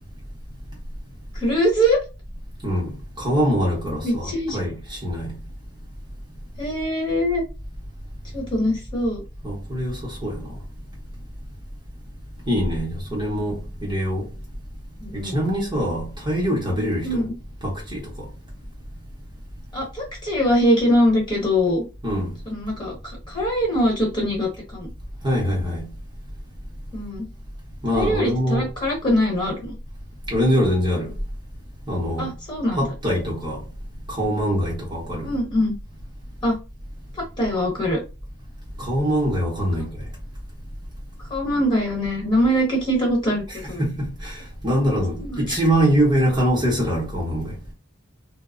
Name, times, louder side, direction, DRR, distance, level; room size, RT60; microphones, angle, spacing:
voice 1, 1.3-2.0 4.0-4.6 6.6-7.4 8.3-9.2 15.0-15.4 17.0-17.3 19.7-21.8 22.5-22.9 23.3-24.9 26.9-27.3 27.9-29.7 32.2-32.9 35.2-35.8 36.4-36.6 37.4-38.0 41.3-43.8 45.2-45.6, equal, 20° left, 1.2 m, -22 dB
voice 2, 2.6-5.3 9.4-10.5 12.5-14.3 15.1-17.3 17.6-18.3 22.0-22.3 25.2-25.9 27.8-28.7 30.3-31.1 31.9-32.3 32.8-33.6 34.1-35.3 38.8-40.1 43.5-47.5, equal, 20° right, 0.8 m, -23 dB
2.1 x 2.0 x 3.6 m
head